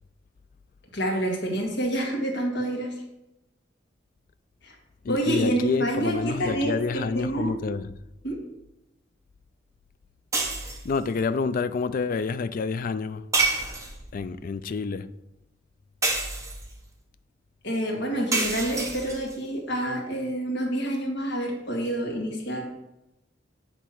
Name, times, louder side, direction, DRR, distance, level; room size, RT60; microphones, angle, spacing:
voice 1, 0.9-2.9 4.6-4.8 5.1-7.6 8.2-8.4 17.6-22.7, right 1 dB, 65° left, 2.0 m, -28 dB
voice 2, 5.0-7.9 10.8-13.3 14.1-15.1, left 4 dB, 45° left, 0.3 m, -28 dB
sound 1, 10.3-11.0 13.3-14.2 16.0-16.8 18.3-19.4, right 3 dB, 15° right, 1.0 m, -27 dB
8.2 x 3.4 x 5.9 m
head